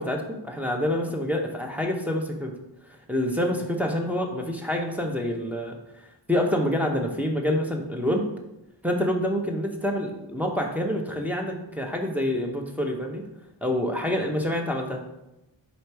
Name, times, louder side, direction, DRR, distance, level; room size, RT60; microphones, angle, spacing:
voice 1, 0.0-2.5 3.1-5.8 6.3-8.2 8.8-13.2 13.6-15.0, left 1 dB, 5° right, 0 dB, 0.8 m, -27 dB
5.1 x 4.1 x 4.6 m, 0.92 s
wide cardioid pair, 105°, 46 cm